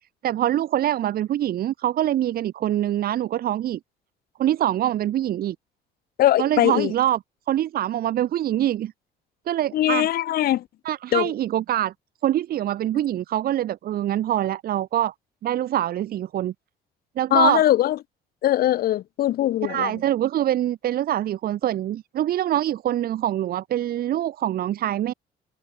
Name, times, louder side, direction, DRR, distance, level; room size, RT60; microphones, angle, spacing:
voice 1, 0.2-3.8 4.4-5.6 6.4-7.2 7.5-8.9 9.5-10.1 10.8-11.9 12.2-15.1 15.4-16.5 17.2-17.6 19.6-25.1, right 12 dB, 60° right, 2.5 m, -24 dB
voice 2, 6.2-6.9 9.7-10.6 11.1-11.3 17.3-18.0 18.4-19.9, left 13 dB, 65° left, 1.2 m, -21 dB
cardioid pair, 110°, 17 cm